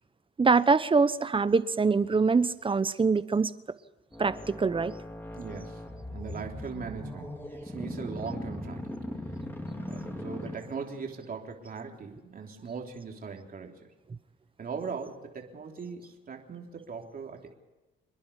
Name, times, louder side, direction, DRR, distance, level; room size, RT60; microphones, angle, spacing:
voice 1, 0.4-3.5 4.2-4.9, right 4 dB, 25° right, 14 dB, 1.0 m, -24 dB
sound 1, 4.1-11.1, left 1 dB, 10° left, 3.5 m, -39 dB
voice 2, 5.3-5.8 6.1-9.0 9.7-13.9 14.6-17.5, right 5 dB, 45° right, 1 dB, 3.6 m, -40 dB
27.5 x 10.5 x 10.0 m, 1.1 s
cardioid pair, 90°, 20 cm